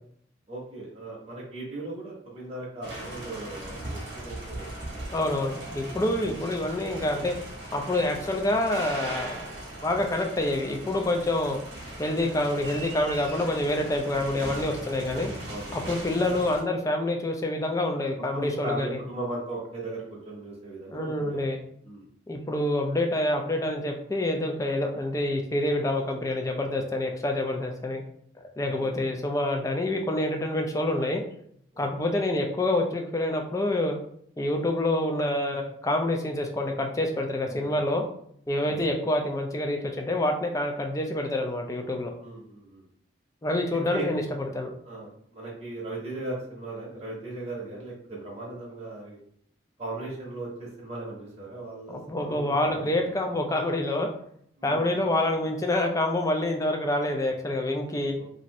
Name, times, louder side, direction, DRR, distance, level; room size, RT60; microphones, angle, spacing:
voice 1, 0.5-5.4 15.4-15.9 18.3-21.4 21.8-22.0 28.6-29.0 31.7-32.0 37.5-37.8 38.6-38.8 42.2-42.8 43.9-44.1 44.8-49.2 49.8-53.2 54.6-54.9 58.2-58.3, right 2 dB, 30° right, -5 dB, 0.8 m, -38 dB
sound 1, 2.8-16.6, right 1 dB, 60° right, 1.0 m, -39 dB
voice 2, 5.1-7.4 7.7-9.5 9.8-11.6 12.0-15.3 15.7-19.0 20.9-21.6 22.3-28.0 28.6-31.2 31.8-34.0 34.4-38.0 38.5-42.1 43.4-44.7 51.9-54.1 54.6-58.2, left 1 dB, 15° left, 3 dB, 0.3 m, -27 dB
2.6 x 2.5 x 3.0 m, 0.67 s
head